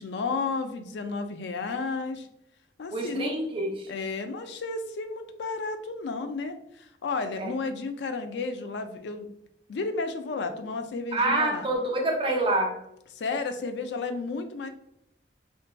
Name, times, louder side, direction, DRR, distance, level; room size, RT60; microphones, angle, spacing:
voice 1, 0.0-2.3 2.8-3.4 3.9-9.3 9.7-11.7 13.2-14.7, left 4 dB, 85° left, 8 dB, 0.4 m, -32 dB
voice 2, 2.9-3.9 7.4-7.5 11.1-12.8, right 2 dB, 30° right, -1 dB, 0.5 m, -26 dB
3.7 x 2.5 x 2.2 m, 0.77 s
head